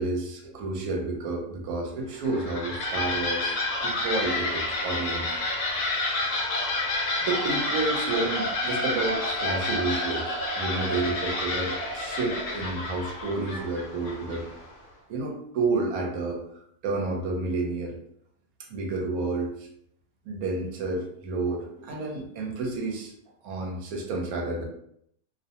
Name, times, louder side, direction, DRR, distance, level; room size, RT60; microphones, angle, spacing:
voice 1, 0.0-3.6 3.8-5.3 5.7-5.9 7.2-14.4 15.1-18.0 18.7-19.7 20.3-23.1 23.4-24.6, right 3 dB, 80° right, 1 dB, 1.1 m, -30 dB
sound 1, 2.1-14.7, left 2 dB, 65° left, 0.9 m, -29 dB
2.6 x 2.1 x 2.7 m, 0.71 s
omnidirectional pair, 1.5 m